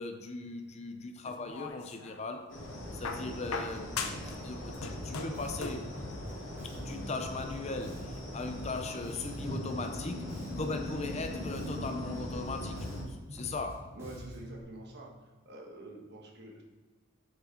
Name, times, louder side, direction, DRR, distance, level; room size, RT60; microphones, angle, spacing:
voice 1, 0.0-2.6 2.9-5.9 6.6-14.0, left 3 dB, 30° left, 0.5 m, -39 dB
sound 1, 1.3-2.2 3.0-4.4 4.6-5.9 7.0-7.1, left 4 dB, 80° left, 0.7 m, -39 dB
sound 2, 2.5-13.0, left 1 dB, 55° left, 2.6 m, -41 dB
Bass guitar, 4.7-14.6, equal, 10° right, 2.3 m, -45 dB
voice 2, 13.9-16.6, right 2 dB, 50° right, 1.5 m, -47 dB
7.0 x 6.3 x 4.3 m
head